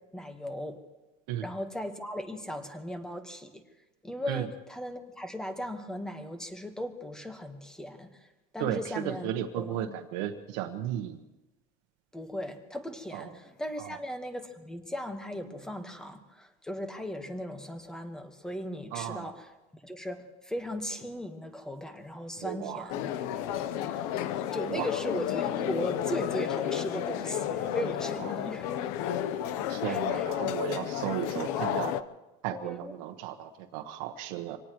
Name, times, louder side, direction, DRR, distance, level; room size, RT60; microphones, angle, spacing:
voice 1, 0.1-0.8 1.4-3.6 4.0-9.9 12.1-23.1 23.9-24.1 24.5-28.9 29.9-30.3 32.5-32.9, equal, 5° left, 7 dB, 1.3 m, -38 dB
voice 2, 8.6-11.2 13.1-13.3 13.8-14.0 18.9-19.3 22.4-22.9 24.7-24.9 28.2-28.4 29.7-31.9 32.4-34.6, right 11 dB, 75° right, 4 dB, 1.3 m, -35 dB
sound 1, 22.9-32.0, left 10 dB, 70° left, 0.8 m, -32 dB
25.5 x 18.5 x 3.1 m, 1.1 s
cardioid pair, 150°, 19 cm